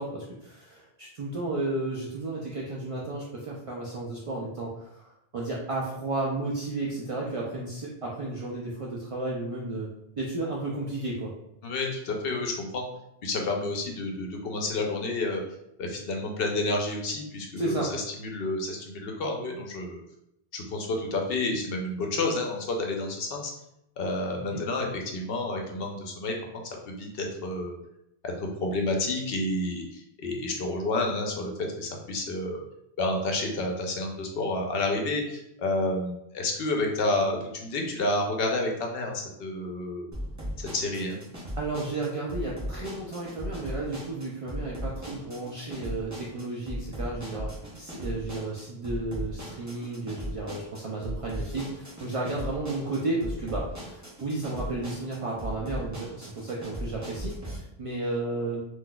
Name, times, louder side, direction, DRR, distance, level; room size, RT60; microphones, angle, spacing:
voice 1, 0.0-9.9 10.2-11.3 17.6-17.9 24.5-24.6 40.6-40.7 41.6-58.6, right 2 dB, 60° right, -4 dB, 0.3 m, -33 dB
voice 2, 11.6-12.9 13.2-15.4 15.8-17.8 18.2-20.0 20.5-23.5 24.0-27.7 28.2-31.5 31.8-32.6 33.0-40.1 40.6-41.2, left 2 dB, 65° left, 1 dB, 0.8 m, -30 dB
sound 1, 40.1-57.6, equal, 20° right, 0.7 m, -38 dB
3.8 x 2.5 x 2.2 m, 0.82 s
omnidirectional pair, 1.1 m